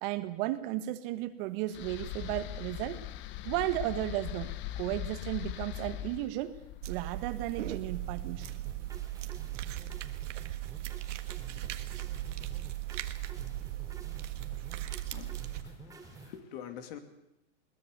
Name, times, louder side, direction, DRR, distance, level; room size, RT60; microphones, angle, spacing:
voice 1, 0.0-3.0 3.5-6.6 6.9-8.5, right 15 dB, 50° right, 11 dB, 1.6 m, -34 dB
sound 1, 1.7-8.9, left 13 dB, 30° left, 0.9 m, -41 dB
sound 2, 6.8-15.6, right 14 dB, 75° right, 1.7 m, -38 dB
sound 3, 8.4-16.4, right 3 dB, 10° right, 2.6 m, -51 dB
voice 2, 15.1-17.0, left 9 dB, 55° left, 7 dB, 2.8 m, -46 dB
21.5 x 19.5 x 6.8 m, 0.86 s
hypercardioid pair, 125°, 37 cm